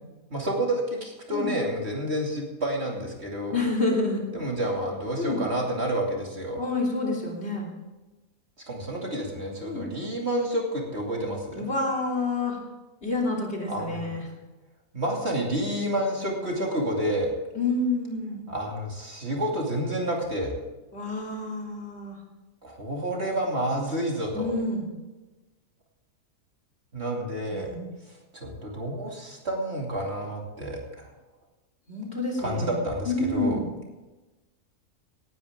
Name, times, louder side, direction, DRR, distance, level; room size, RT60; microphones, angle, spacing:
voice 1, 0.3-3.6 4.3-6.6 8.7-11.7 13.7-14.1 14.9-17.3 18.5-20.6 22.6-24.5 26.9-27.7 28.1-31.1 32.4-33.6, right 1 dB, 45° right, -1 dB, 2.9 m, -29 dB
voice 2, 3.5-4.2 5.2-5.4 6.6-7.7 9.6-9.9 11.6-12.6 13.0-14.3 17.6-18.4 20.9-22.2 24.3-24.9 27.5-27.9 31.9-32.7 33.1-33.7, left 2 dB, 45° left, -2 dB, 3.4 m, -28 dB
18.0 x 12.0 x 3.7 m, 1.1 s
omnidirectional pair, 1.5 m